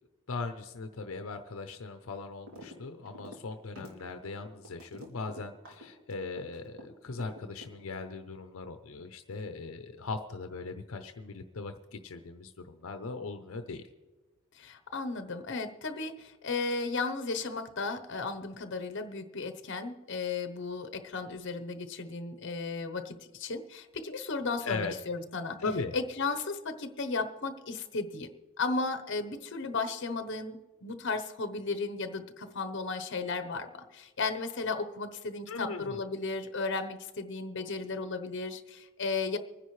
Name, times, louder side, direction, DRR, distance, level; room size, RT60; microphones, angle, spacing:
voice 1, 0.3-13.8 24.6-24.9 25.6-25.9 35.5-36.0, left 3 dB, 80° left, 8 dB, 0.7 m, -39 dB
sound 1, 2.5-2.8 3.0-6.8 7.2-8.1, equal, 85° right, 2.9 m, -48 dB
voice 2, 14.5-25.6 25.9-28.3 28.6-39.4, left 3 dB, 60° left, 9 dB, 0.9 m, -35 dB
25.0 x 10.0 x 3.2 m, 1.3 s
head